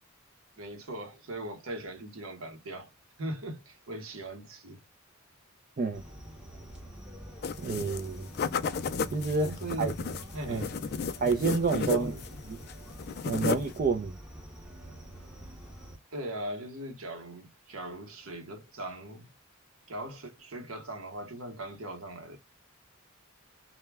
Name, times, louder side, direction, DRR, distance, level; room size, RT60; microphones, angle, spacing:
voice 1, 0.6-2.9 3.2-4.8 9.4-10.0 10.3-11.1 11.7-12.4 16.1-19.3 19.9-22.4, right 1 dB, 85° right, 0.9 m, -40 dB
sound 1, 5.9-16.0, right 1 dB, 5° right, 0.7 m, -46 dB
sound 2, 7.4-8.1 8.3-12.4 12.6-13.8, left 5 dB, 50° left, 0.3 m, -33 dB
voice 2, 7.6-8.3 9.1-9.5 9.8-9.9 10.5-10.7 11.2-12.1 12.5-12.6 13.2-14.2, right 4 dB, 40° right, 0.4 m, -28 dB
2.2 x 2.1 x 3.3 m
head